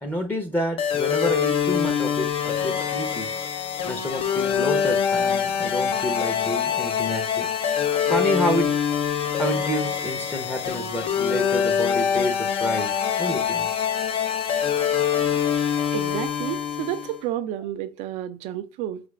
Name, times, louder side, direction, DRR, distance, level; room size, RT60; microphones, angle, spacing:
voice 1, 0.0-3.3 3.9-7.5 8.0-8.7 9.4-13.7, equal, 15° left, 0.7 m, -29 dB
sound 1, 0.8-17.2, left 8 dB, 55° left, 0.6 m, -24 dB
voice 2, 15.9-19.0, right 12 dB, 90° right, 0.4 m, -31 dB
4.5 x 2.4 x 3.1 m
cardioid pair, 115°, 11 cm